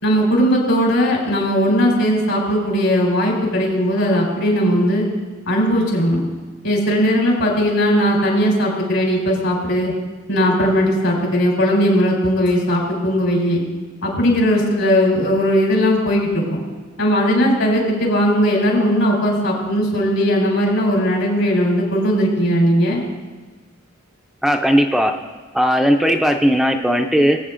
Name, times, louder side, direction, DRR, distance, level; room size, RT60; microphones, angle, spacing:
voice 1, 0.0-5.1 5.5-6.2 6.6-9.9 10.3-13.6 14.0-16.6 17.0-23.0, equal, 80° left, -2 dB, 3.8 m, -18 dB
voice 2, 24.4-25.2 25.5-27.4, equal, ahead, 4 dB, 0.4 m, -16 dB
21.5 x 8.5 x 2.5 m, 1.3 s
head